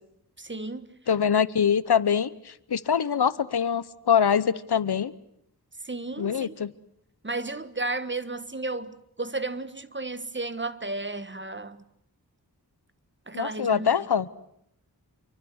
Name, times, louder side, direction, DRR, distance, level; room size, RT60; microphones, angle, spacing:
voice 1, 0.4-0.9 1.3-1.4 5.8-6.5 7.2-11.8 13.3-13.9, right 2 dB, 30° right, 1.6 m, -33 dB
voice 2, 1.1-5.1 6.2-6.7 13.3-14.3, left 7 dB, 85° left, 1.0 m, -24 dB
28.0 x 24.0 x 8.1 m
wide cardioid pair, 65°, 38 cm